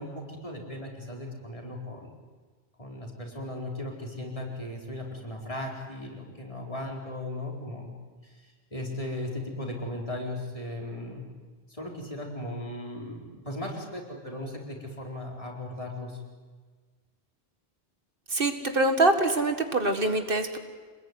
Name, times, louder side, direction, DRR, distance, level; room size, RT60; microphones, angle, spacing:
voice 1, 0.0-2.1 2.8-7.9 8.2-11.2 11.7-16.2, left 1 dB, 30° left, -1 dB, 4.6 m, -37 dB
voice 2, 18.3-20.6, right 2 dB, 60° right, 7 dB, 2.0 m, -24 dB
27.0 x 20.5 x 9.6 m, 1.5 s
omnidirectional pair, 1.1 m